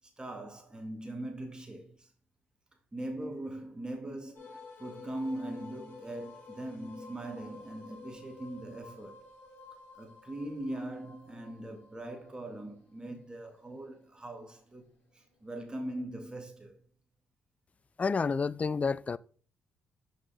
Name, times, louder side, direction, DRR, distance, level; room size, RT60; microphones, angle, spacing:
voice 1, 0.2-2.1 2.9-9.2 10.0-16.8, right 1 dB, 20° right, 1.9 m, -41 dB
sound 1, 4.3-15.5, left 3 dB, 55° left, 3.3 m, -52 dB
voice 2, 18.0-19.2, left 5 dB, 35° left, 0.3 m, -29 dB
6.2 x 5.2 x 3.5 m
supercardioid pair, 60°, 4 cm